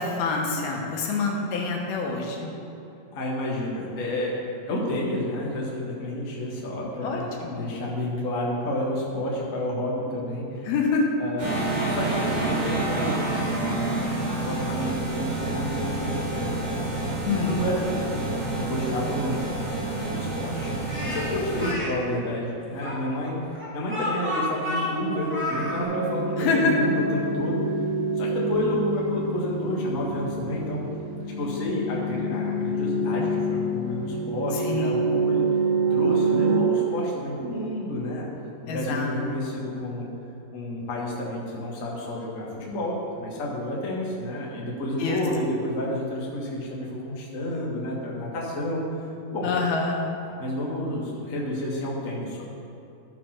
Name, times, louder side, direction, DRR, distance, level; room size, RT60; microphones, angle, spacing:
voice 1, 0.0-2.5 7.0-7.7 10.7-11.0 17.3-17.6 26.4-26.8 34.7-35.0 38.7-39.1 45.0-45.2 49.4-50.0, left 4 dB, 80° left, 0 dB, 3.0 m, -26 dB
voice 2, 3.1-10.7 11.2-11.5 11.8-16.7 17.5-19.4 19.9-20.7 21.0-27.6 28.2-30.8 31.3-35.4 35.9-38.3 38.6-40.1 40.5-48.8 49.3-49.5 50.4-52.5, left 1 dB, 40° left, -4 dB, 1.1 m, -30 dB
sound 1, 11.4-21.7, right 2 dB, 80° right, 4.4 m, -28 dB
Speech, 20.9-21.9 22.8-25.8, left 2 dB, 5° right, 0.9 m, -30 dB
sound 2, 25.1-37.8, right 3 dB, 55° right, 1.8 m, -27 dB
13.0 x 5.0 x 5.9 m, 2.8 s
omnidirectional pair, 4.3 m